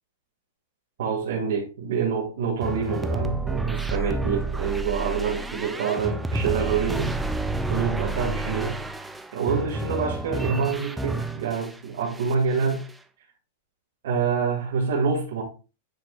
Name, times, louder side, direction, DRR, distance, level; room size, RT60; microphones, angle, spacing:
voice 1, 1.0-7.2 7.7-8.8 9.3-12.8 14.0-15.4, right 6 dB, 65° right, 2.2 m, -26 dB
sound 1, 2.6-11.8 12.1-12.9, right 2 dB, 5° right, 0.4 m, -30 dB
9.1 x 4.8 x 2.5 m
supercardioid pair, 170°, 0 cm